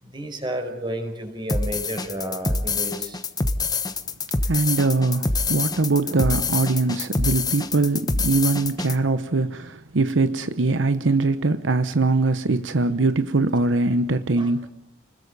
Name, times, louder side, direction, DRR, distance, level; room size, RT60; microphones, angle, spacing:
voice 1, 0.0-3.2 14.4-14.7, equal, 25° right, 4.9 m, -32 dB
sound 1, 1.5-9.0, left 3 dB, 20° left, 1.1 m, -25 dB
voice 2, 4.5-14.7, right 3 dB, 85° right, 0.9 m, -22 dB
29.5 x 21.0 x 5.3 m
head